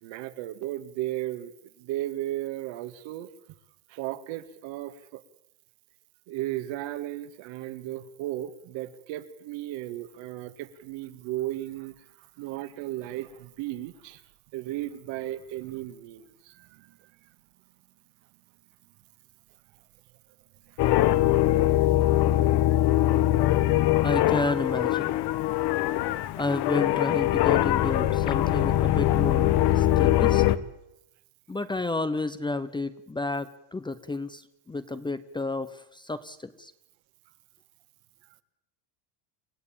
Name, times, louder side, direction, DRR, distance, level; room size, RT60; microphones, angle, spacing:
voice 1, 0.0-1.5 1.8-3.3 3.9-5.2 6.3-11.9 12.4-14.2 14.5-17.0 20.7-20.8, right 15 dB, 65° right, 10 dB, 2.1 m, -35 dB
sound 1, 20.8-30.6, left 14 dB, 55° left, 1.4 m, -22 dB
voice 2, 24.0-25.1 26.4-30.4 31.5-34.4 34.7-36.7, left 2 dB, 10° left, 13 dB, 0.8 m, -31 dB
29.0 x 15.0 x 8.9 m, 0.82 s
cardioid pair, 140°, 49 cm